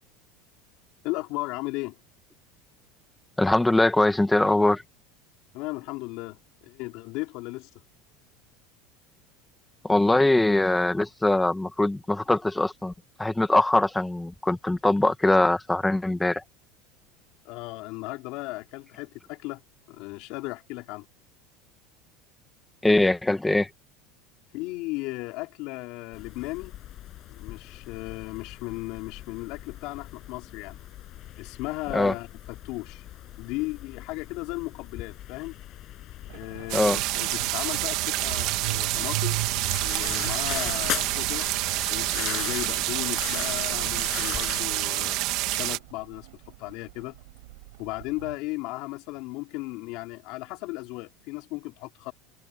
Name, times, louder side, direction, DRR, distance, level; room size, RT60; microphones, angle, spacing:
voice 1, 1.0-1.9 5.5-7.7 17.4-19.6 19.9-21.1 24.5-26.7 27.3-30.8 31.4-33.0 33.4-35.6 36.3-39.4 39.8-41.5 41.9-47.2 47.8-52.1, left 22 dB, 55° left, 4.4 m, -36 dB
voice 2, 3.4-4.8 9.8-12.9 13.2-16.4 22.8-23.7 31.9-32.1 36.7-37.0, left 2 dB, 5° left, 1.8 m, -22 dB
sound 1, 26.1-44.6, left 14 dB, 35° left, 7.8 m, -40 dB
sound 2, 36.3-48.4, right 22 dB, 80° right, 5.6 m, -39 dB
sound 3, 36.7-45.8, right 18 dB, 50° right, 2.5 m, -28 dB
open air
cardioid pair, 165°, 0 cm